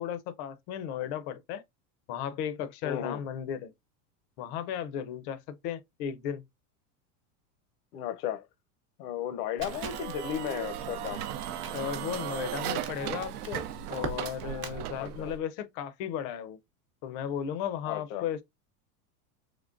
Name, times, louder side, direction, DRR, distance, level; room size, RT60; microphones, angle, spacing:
voice 1, 0.0-1.6 2.1-3.7 4.4-6.4 11.7-16.6 17.0-18.4, left 9 dB, 45° left, 0.5 m, -35 dB
voice 2, 2.8-3.2 7.9-8.5 9.0-11.3 11.7-11.8 15.0-15.3 17.9-18.2, left 10 dB, 85° left, 0.8 m, -35 dB
Crackle, 9.6-14.8, right 4 dB, 25° right, 0.7 m, -43 dB
sound 1, 9.6-15.4, right 10 dB, 75° right, 0.7 m, -36 dB
3.7 x 3.2 x 2.4 m
supercardioid pair, 150°, 46 cm